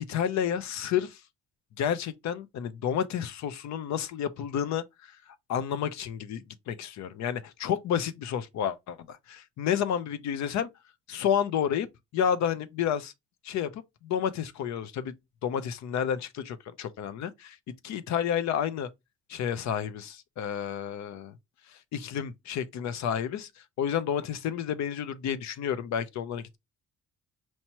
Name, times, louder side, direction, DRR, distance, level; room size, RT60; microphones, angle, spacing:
voice 1, 0.1-1.2 1.8-4.8 5.5-10.7 11.1-11.9 12.1-13.1 13.4-15.1 15.4-17.6 17.8-18.9 19.3-21.3 21.9-23.5 23.8-26.6, left 8 dB, 70° left, 0.6 m, -30 dB
4.5 x 2.8 x 2.9 m
cardioid pair, 85°, 29 cm